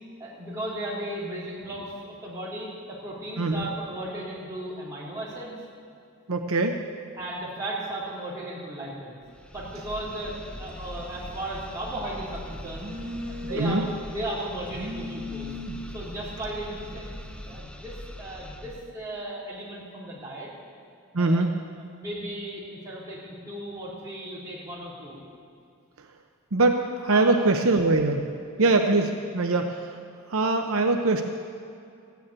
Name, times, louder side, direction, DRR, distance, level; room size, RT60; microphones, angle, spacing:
voice 1, 0.2-5.6 7.2-9.2 9.5-12.9 13.4-15.5 15.9-17.2 17.4-20.5 21.2-21.5 21.9-25.2 27.1-27.4 28.6-28.7, right 1 dB, 15° right, -8 dB, 4.2 m, -36 dB
voice 2, 3.4-3.7 6.3-6.8 13.5-13.8 21.1-21.5 26.5-28.2 28.6-30.0 30.3-31.2, right 2 dB, 70° right, 4 dB, 0.8 m, -22 dB
sound 1, 9.2-18.9, left 1 dB, 5° left, 0.6 m, -42 dB
Telephone, 9.5-17.6, left 1 dB, 35° right, 1.4 m, -41 dB
14.5 x 9.3 x 8.7 m, 2.4 s
head